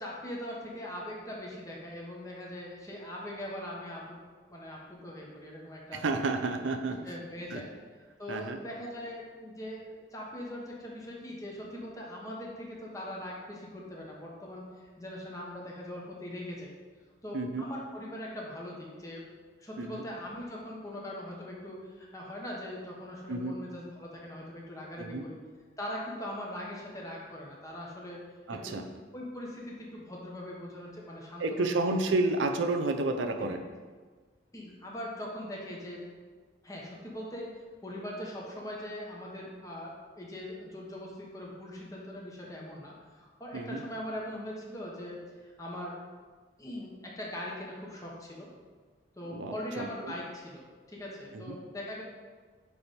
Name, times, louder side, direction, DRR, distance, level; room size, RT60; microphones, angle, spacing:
voice 1, 0.0-4.2 4.5-6.0 7.0-7.7 8.2-16.7 17.2-19.2 19.6-25.4 25.8-28.2 28.5-28.8 29.1-31.8 34.5-36.0 36.6-37.5 37.8-46.0 46.6-48.5 49.2-52.0, left 1 dB, 20° left, -3 dB, 1.2 m, -41 dB
voice 2, 5.9-7.0 7.5-7.6 8.3-8.6 17.3-17.6 19.8-20.0 23.3-23.6 25.0-25.2 28.5-28.8 31.4-33.6 43.5-43.8 49.3-50.1 51.3-51.6, right 2 dB, 85° right, 6 dB, 0.6 m, -31 dB
8.5 x 3.4 x 4.3 m, 1.4 s
head